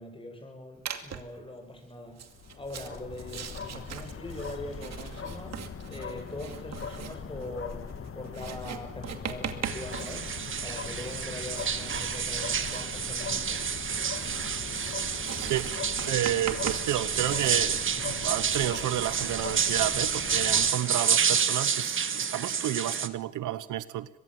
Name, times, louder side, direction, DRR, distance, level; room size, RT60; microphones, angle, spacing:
voice 1, 0.0-2.2 2.5-7.8 8.1-10.3 10.6-13.6, left 1 dB, 15° left, 7.5 m, -42 dB
Writing, 0.8-1.4 2.1-17.5, right 8 dB, 60° right, 2.5 m, -41 dB
sound 1, 2.2-20.7, left 6 dB, 45° left, 1.9 m, -41 dB
sound 2, 9.6-23.1, right 7 dB, 40° right, 1.6 m, -29 dB
voice 2, 14.7-15.1 15.4-15.7 16.1-24.1, right 13 dB, 80° right, 1.1 m, -31 dB
23.5 x 22.0 x 7.8 m
cardioid pair, 90°, 30 cm